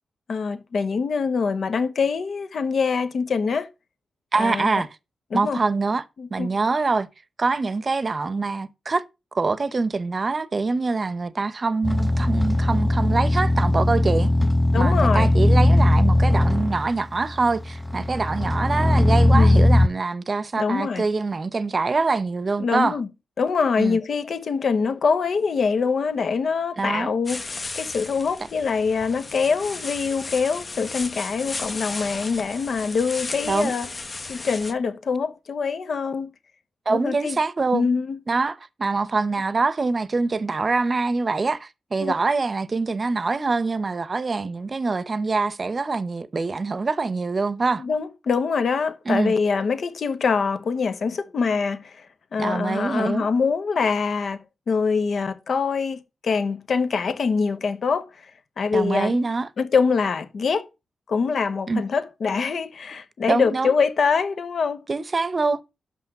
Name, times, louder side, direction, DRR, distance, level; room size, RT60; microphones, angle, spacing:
voice 1, 0.3-3.7 4.4-4.7 5.3-5.6 6.2-6.5 14.7-15.3 19.3-19.6 20.6-21.0 22.6-23.1 23.4-33.9 34.3-36.3 36.9-37.4 37.7-38.2 42.0-42.1 47.8-52.1 52.3-58.1 58.6-59.2 59.6-60.7 61.1-64.8, left 5 dB, 65° left, 1.0 m, -24 dB
voice 2, 4.3-4.9 5.3-6.0 6.3-7.1 7.4-9.0 9.3-14.3 14.7-23.0 23.8-24.0 26.8-27.1 33.5-33.7 36.9-37.9 38.3-47.8 49.1-49.3 52.4-53.3 58.7-59.5 61.7-61.8 63.3-63.7 64.9-65.6, right 3 dB, 45° right, 0.8 m, -24 dB
sound 1, 11.8-19.9, left 1 dB, 10° left, 0.4 m, -19 dB
sound 2, 27.2-34.7, left 3 dB, 40° left, 0.8 m, -35 dB
6.1 x 5.8 x 6.0 m
cardioid pair, 65°, 0 cm